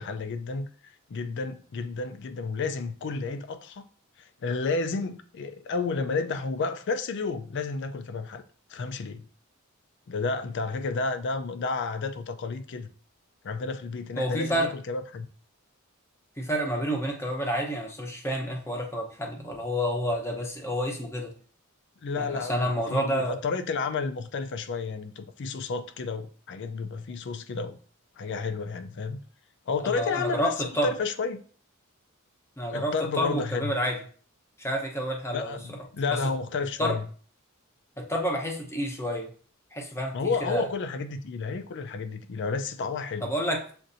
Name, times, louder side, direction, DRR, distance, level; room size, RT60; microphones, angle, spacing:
voice 1, 0.0-3.9 4.2-8.4 8.7-9.2 10.1-12.9 13.4-15.3 22.0-27.8 28.2-29.2 29.7-31.4 32.7-33.7 35.3-37.0 40.1-43.3, left 4 dB, 55° left, 0.4 m, -31 dB
voice 2, 14.2-14.7 16.4-21.3 22.2-23.4 29.8-30.9 32.6-34.0 34.6-35.6 36.1-36.2 36.8-37.0 38.0-39.3 39.7-40.7 43.2-43.6, equal, 10° left, 0.8 m, -29 dB
7.4 x 2.6 x 2.6 m
head